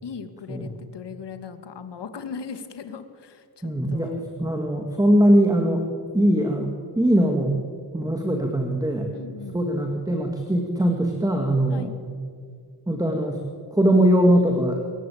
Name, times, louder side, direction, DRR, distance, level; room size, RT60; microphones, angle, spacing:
voice 1, 0.0-4.2 9.1-9.6 11.7-11.9, left 6 dB, 80° left, 9 dB, 2.3 m, -38 dB
voice 2, 3.6-5.9 6.1-7.6 7.9-9.1 9.5-11.9 12.9-13.4 13.7-14.8, right 1 dB, 10° right, 2 dB, 2.4 m, -21 dB
26.5 x 22.0 x 8.8 m, 2.2 s
wide cardioid pair, 155°, 41 cm